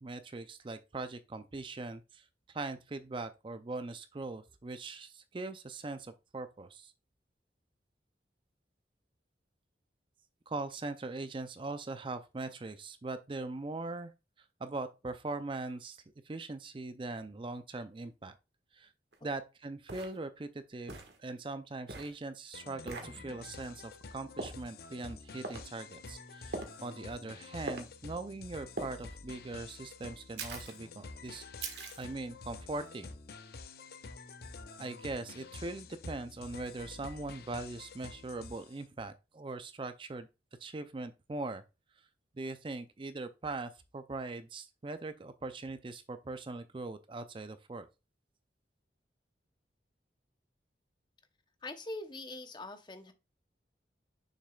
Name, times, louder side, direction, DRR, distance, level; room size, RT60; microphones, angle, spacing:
voice 1, 0.0-6.9 10.5-14.1 14.6-16.0 16.3-18.3 18.7-18.9 19.2-31.4 32.0-33.2 34.8-40.3 40.6-41.6 42.4-47.9, right 3 dB, 30° right, 0.4 m, -41 dB
sound 1, 19.1-19.2 19.9-20.2 20.9-21.2 21.9-22.1 22.9-23.1 24.4-24.6 25.4-25.7 26.5-26.8 27.7-27.9 28.8-29.0 30.4-30.8 31.6-32.0, right 3 dB, 70° right, 1.5 m, -41 dB
sound 2, 22.5-38.8, left 4 dB, 55° left, 0.6 m, -49 dB
voice 2, 51.6-53.1, left 2 dB, 25° left, 0.8 m, -43 dB
6.5 x 6.4 x 2.3 m
head